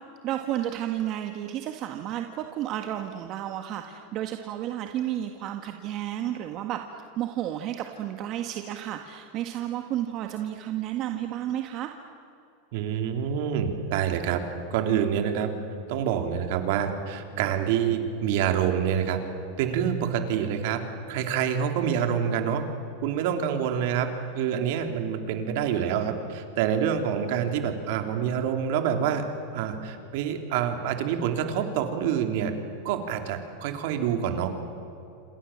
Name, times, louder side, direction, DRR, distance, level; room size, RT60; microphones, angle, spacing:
voice 1, 0.2-6.8 7.2-11.9, right 12 dB, 45° right, 5 dB, 1.7 m, -32 dB
voice 2, 12.7-14.4 14.7-15.5 15.9-19.2 19.6-20.8 21.1-22.6 23.0-29.2 29.5-32.5 32.8-34.5, right 8 dB, 65° right, 5 dB, 3.4 m, -27 dB
28.0 x 27.0 x 7.5 m, 2.7 s
supercardioid pair, 125°, 0 cm